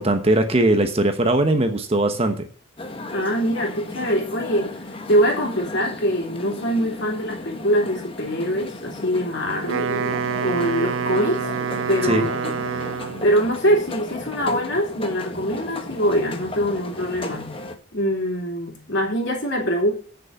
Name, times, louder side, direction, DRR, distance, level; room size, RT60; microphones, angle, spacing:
voice 1, 0.0-2.5 12.0-12.3, right 1 dB, 30° right, 7 dB, 1.1 m, -20 dB
sound 1, 2.8-17.8, left 2 dB, 25° left, 1.0 m, -35 dB
voice 2, 3.1-4.7 5.1-11.5 11.9-17.6 17.9-19.9, equal, 60° left, 1 dB, 3.2 m, -23 dB
Wind instrument woodwind instrument, 9.5-13.4, right 6 dB, 75° right, 0.5 m, -27 dB
8.4 x 6.6 x 7.7 m, 0.43 s
head